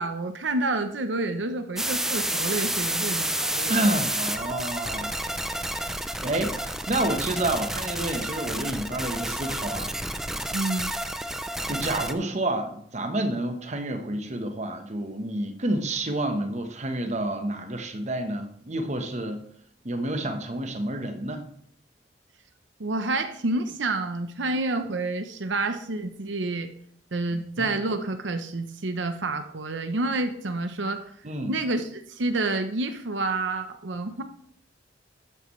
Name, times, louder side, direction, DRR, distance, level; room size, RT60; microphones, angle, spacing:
voice 1, 0.0-3.7 10.5-10.9 22.8-26.7 27.1-31.0 31.5-34.2, right 2 dB, 85° right, 8 dB, 0.8 m, -29 dB
sound 1, 1.8-12.1, right 1 dB, ahead, 0.5 m, -30 dB
voice 2, 3.7-5.2 6.2-9.9 11.3-11.4 11.7-19.4 19.8-21.4 27.3-27.7 31.2-31.5, right 1 dB, 40° right, 6 dB, 1.1 m, -29 dB
12.5 x 9.0 x 3.2 m, 0.65 s
head